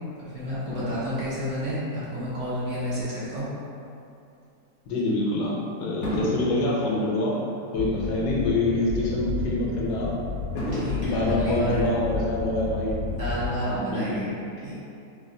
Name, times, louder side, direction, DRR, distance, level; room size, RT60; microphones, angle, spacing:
voice 1, 0.3-3.5 10.7-11.9 13.1-14.3 14.6-14.8, equal, 55° right, -11 dB, 1.0 m, -30 dB
Fireworks, 0.7-3.3 3.9-4.1 6.0-8.5 8.9-9.0 10.6-12.4 13.2-13.3, left 1 dB, 60° left, 0.8 m, -36 dB
voice 2, 4.9-7.4 7.7-10.1 10.5-10.7 11.0-13.0 13.6-14.2, left 2 dB, 80° left, -4 dB, 1.2 m, -26 dB
sound 1, 7.7-13.5, left 3 dB, 85° right, 1.4 m, -32 dB
3.5 x 2.3 x 2.6 m, 2.6 s
omnidirectional pair, 1.7 m